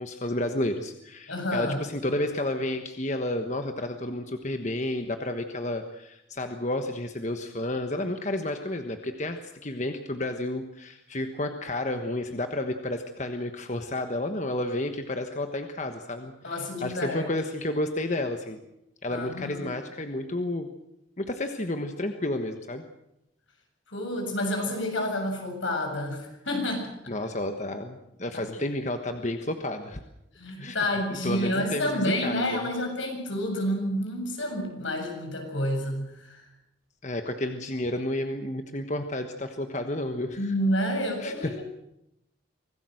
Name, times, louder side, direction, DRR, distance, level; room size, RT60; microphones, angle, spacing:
voice 1, 0.0-18.6 19.0-20.7 21.2-22.9 27.1-30.0 30.6-30.8 31.2-32.7 37.0-40.5 41.2-41.6, left 1 dB, 35° left, 6 dB, 1.3 m, -31 dB
voice 2, 1.3-1.8 16.4-17.3 19.1-19.7 23.9-27.1 30.3-36.4 40.4-41.6, left 1 dB, 75° left, 3 dB, 7.5 m, -29 dB
25.5 x 18.5 x 7.8 m, 0.84 s
head